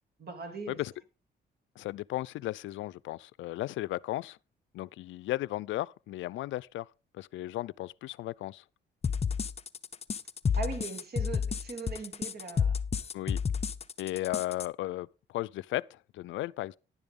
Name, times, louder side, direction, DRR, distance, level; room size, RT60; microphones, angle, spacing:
voice 1, 0.2-0.8 10.6-12.8, right 4 dB, 50° right, 3.0 m, -39 dB
voice 2, 1.8-4.4 4.7-6.9 7.1-8.6 13.1-13.4 14.0-16.8, left 16 dB, 75° left, 0.4 m, -35 dB
sound 1, 9.0-14.7, left 6 dB, 30° left, 0.6 m, -31 dB
10.5 x 10.5 x 3.7 m
cardioid pair, 90°, 20 cm